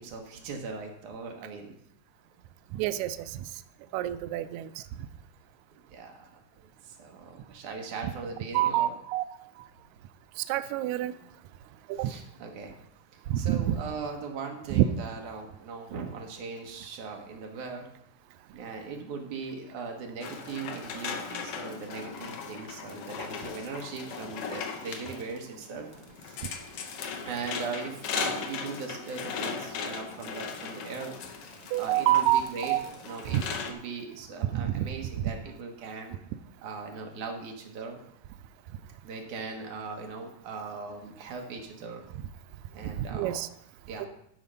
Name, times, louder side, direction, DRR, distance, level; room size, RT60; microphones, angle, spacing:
voice 1, 0.0-1.7 5.9-8.9 12.0-12.7 13.1-17.9 18.5-25.9 26.2-26.4 27.2-31.1 31.4-32.7 33.0-36.2 36.6-38.0 39.0-42.1 42.7-43.4 43.9-44.1, right 5 dB, 70° right, 2 dB, 2.7 m, -39 dB
voice 2, 2.7-3.5 3.9-5.1 8.0-8.1 8.5-9.2 9.6-9.7 10.4-11.1 11.9-12.1 13.3-13.8 14.7-14.9 31.7-32.8 33.3-33.4 34.5-34.9 42.8-43.5 44.0-44.1, right 13 dB, 85° right, 13 dB, 1.6 m, -27 dB
sound 1, 20.2-33.7, left 6 dB, 70° left, 1.4 m, -38 dB
12.5 x 5.0 x 5.5 m, 0.73 s
omnidirectional pair, 3.8 m